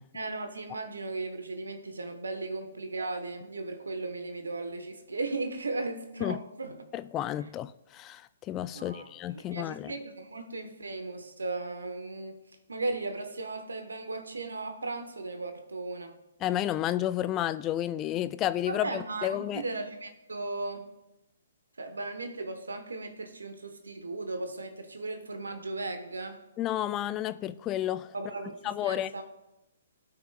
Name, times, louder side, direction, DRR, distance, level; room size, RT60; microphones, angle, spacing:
voice 1, 0.1-6.8 8.7-12.4 12.7-16.2 18.7-20.9 21.8-26.4 28.1-29.2, right 3 dB, 80° right, 1.0 m, -36 dB
voice 2, 6.9-9.9 16.4-19.6 26.6-28.1 28.6-29.1, left 12 dB, 25° left, 0.3 m, -31 dB
16.0 x 5.7 x 2.3 m
figure-of-eight pair, 130°, 0 cm